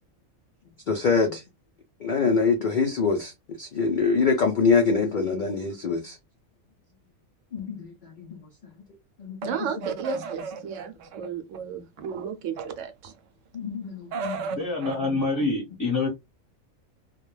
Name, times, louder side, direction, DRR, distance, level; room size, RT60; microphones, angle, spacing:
voice 1, 0.9-1.4 2.0-3.3 3.6-6.2 7.5-7.9 8.2-8.4 9.2-9.5 13.5-14.6, left 4 dB, 85° left, 0.4 m, -24 dB
voice 2, 9.4-13.1 14.1-15.0, right 6 dB, 70° right, 0.9 m, -33 dB
voice 3, 14.6-16.1, left 3 dB, 25° left, 0.8 m, -26 dB
2.3 x 2.2 x 3.0 m
omnidirectional pair, 1.4 m